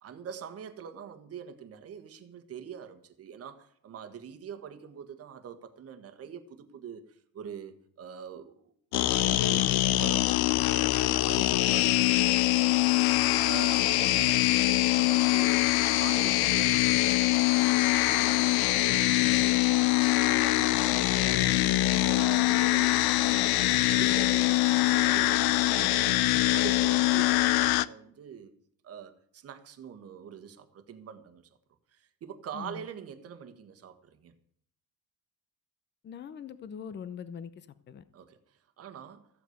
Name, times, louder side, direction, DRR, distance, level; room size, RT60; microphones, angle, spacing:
voice 1, 0.0-8.6 8.9-10.4 11.0-12.3 13.1-17.7 18.0-19.8 20.2-21.6 22.0-24.6 24.9-26.2 26.5-28.5 28.8-31.5 31.9-34.3 38.1-39.3, right 8 dB, 40° right, 1.5 m, -44 dB
sound 1, 8.9-27.9, left 17 dB, 90° left, 0.6 m, -24 dB
voice 2, 32.5-32.9 36.0-38.0, left 7 dB, 30° left, 0.7 m, -42 dB
14.5 x 8.2 x 7.9 m
cardioid pair, 165°, 36 cm